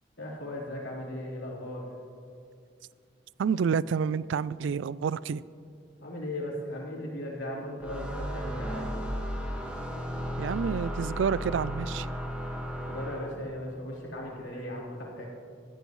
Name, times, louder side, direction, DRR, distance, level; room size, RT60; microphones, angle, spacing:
voice 1, 0.2-1.9 6.0-9.0 12.9-15.3, left 1 dB, 90° left, 3.9 m, -37 dB
voice 2, 3.4-5.4 10.4-12.1, right 6 dB, 85° right, 0.3 m, -28 dB
sound 1, 7.8-13.5, equal, 5° right, 1.6 m, -35 dB
19.0 x 14.5 x 3.1 m
head